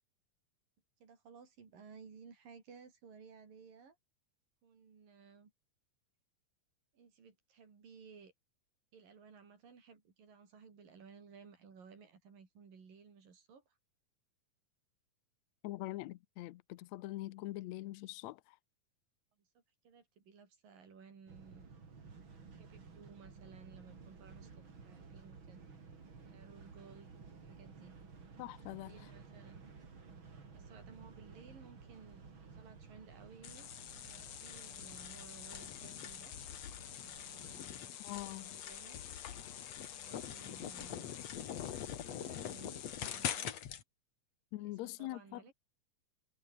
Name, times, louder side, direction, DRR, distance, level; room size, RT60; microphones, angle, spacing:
voice 1, 1.0-4.0 4.6-5.5 6.9-8.3 8.9-13.8 19.4-19.5 19.8-21.7 22.6-25.6 26.3-27.1 27.4-28.0 28.7-29.7 30.5-33.7 34.0-36.3 37.0-37.9 38.3-39.0 39.9-41.1 41.8-43.6 44.6-45.5, right 6 dB, 90° right, 6.2 m, -58 dB
voice 2, 15.6-18.6 28.4-29.1 38.0-38.6 44.5-45.5, left 17 dB, 80° left, 1.7 m, -44 dB
sound 1, 21.3-37.6, right 5 dB, 40° right, 3.8 m, -55 dB
sound 2, 33.4-43.8, left 9 dB, 55° left, 2.6 m, -44 dB
omnidirectional pair, 3.8 m